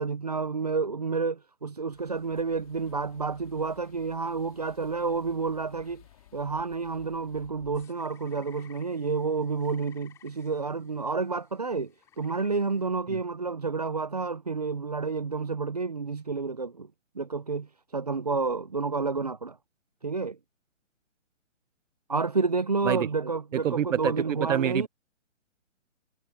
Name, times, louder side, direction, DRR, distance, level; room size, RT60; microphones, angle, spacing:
voice 1, 0.0-6.0 6.3-16.9 17.2-19.6 20.0-20.4 22.1-24.9, right 4 dB, 30° right, 0.5 m, -30 dB
sound 1, 1.9-7.9, left 13 dB, 30° left, 3.8 m, -56 dB
sound 2, 7.7-12.9, left 9 dB, 10° left, 2.7 m, -59 dB
voice 2, 23.5-24.9, right 10 dB, 75° right, 0.6 m, -27 dB
hypercardioid pair, 170°, 38 cm